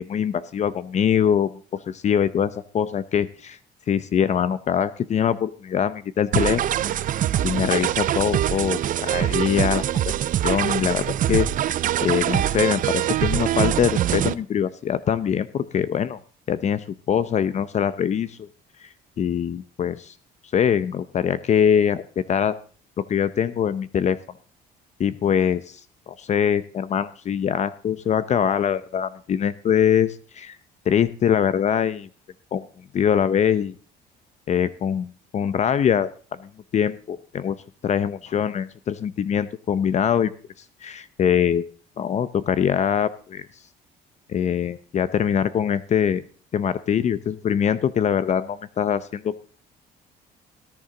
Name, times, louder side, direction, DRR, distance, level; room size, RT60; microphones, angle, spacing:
voice 1, 0.0-3.6 3.9-6.6 7.4-10.1 10.4-11.7 12.0-16.2 16.5-18.5 18.8-18.9 19.2-20.1 20.5-22.5 23.0-24.2 25.0-25.8 26.1-30.6 30.9-32.1 32.5-32.6 32.9-33.8 34.5-36.1 36.4-37.6 37.8-40.3 40.8-41.6 42.0-43.5 44.3-46.2 46.5-49.4, left 8 dB, 45° left, 14 dB, 0.7 m, -23 dB
sound 1, 6.3-14.3, right 12 dB, 55° right, 0.5 m, -23 dB
18.0 x 10.5 x 3.8 m, 0.41 s
cardioid pair, 110°, 17 cm